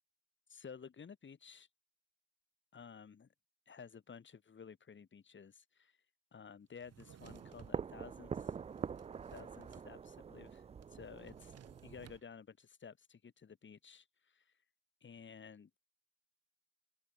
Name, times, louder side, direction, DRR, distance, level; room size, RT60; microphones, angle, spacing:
voice 1, 0.5-1.7 2.7-3.3 3.7-6.0 6.3-8.5 9.3-10.6 10.9-11.5 11.8-14.5 15.0-15.8, left 6 dB, 40° left, 2.6 m, -54 dB
Drawer open or close, 6.8-7.8 8.4-9.9 10.1-10.2 10.5-12.2, right 9 dB, 55° right, 2.8 m, -60 dB
sound 1, 7.2-12.2, right 6 dB, 20° right, 0.3 m, -45 dB
cardioid pair, 90°, 30 cm